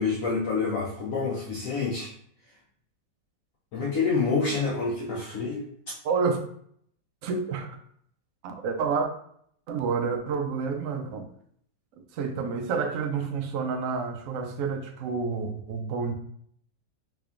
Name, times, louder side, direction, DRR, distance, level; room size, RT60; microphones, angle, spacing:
voice 1, 0.0-2.1 3.7-5.7, left 4 dB, 70° left, -3 dB, 0.8 m, -27 dB
voice 2, 6.0-6.4 7.2-7.8 8.4-9.1 9.7-11.2 12.1-16.1, right 5 dB, 85° right, 5 dB, 0.7 m, -29 dB
3.7 x 3.4 x 2.5 m, 0.65 s
omnidirectional pair, 2.0 m